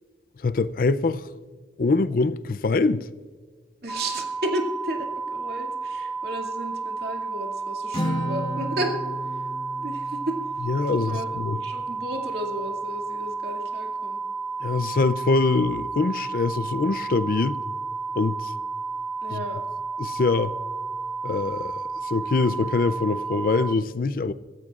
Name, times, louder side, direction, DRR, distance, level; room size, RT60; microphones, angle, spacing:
voice 1, 0.4-1.3 1.8-3.1 10.6-11.6 14.6-17.6 18.2-18.5 19.3-19.4 20.0-20.5 21.2-21.7 22.0-24.3, left 3 dB, 50° left, 0.4 m, -24 dB
voice 2, 3.8-9.0 9.8-10.4 11.1-14.2 19.2-19.6, right 1 dB, 65° right, 2.4 m, -33 dB
sound 1, 3.9-23.7, right 4 dB, 5° right, 0.7 m, -32 dB
Acoustic guitar, 7.9-11.6, equal, 25° left, 1.1 m, -33 dB
25.0 x 13.5 x 2.4 m
head